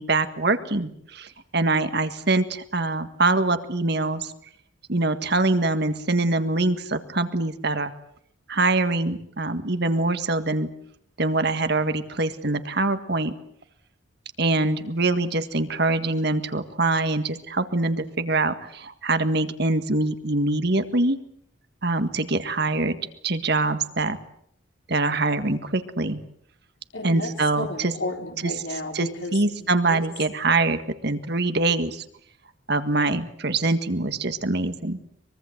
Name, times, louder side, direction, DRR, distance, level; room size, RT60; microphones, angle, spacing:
voice 1, 0.0-4.3 4.9-7.9 8.5-10.7 11.2-13.3 14.4-21.2 21.8-23.0 23.2-24.2 24.9-26.2 27.0-27.9 28.9-32.0 32.7-35.0, right 2 dB, 55° right, 10 dB, 1.8 m, -24 dB
voice 2, 26.9-30.0, left 2 dB, 75° left, 4 dB, 4.4 m, -33 dB
24.0 x 22.5 x 8.0 m, 0.70 s
head